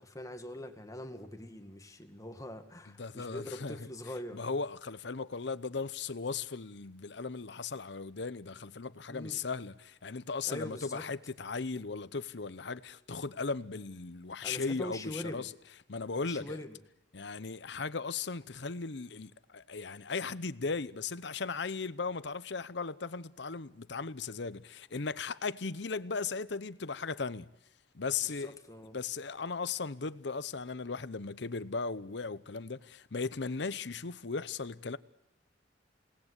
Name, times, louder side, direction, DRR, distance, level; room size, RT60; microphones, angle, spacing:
voice 1, 0.0-4.4 9.1-9.4 10.5-11.1 14.4-15.5 16.2-16.8 28.2-29.0, left 1 dB, 20° left, 2.1 m, -43 dB
voice 2, 2.9-3.8 4.3-15.5 15.9-16.6 17.1-27.5 27.9-28.5 28.9-35.0, left 4 dB, 70° left, 0.9 m, -37 dB
28.0 x 19.0 x 8.3 m
head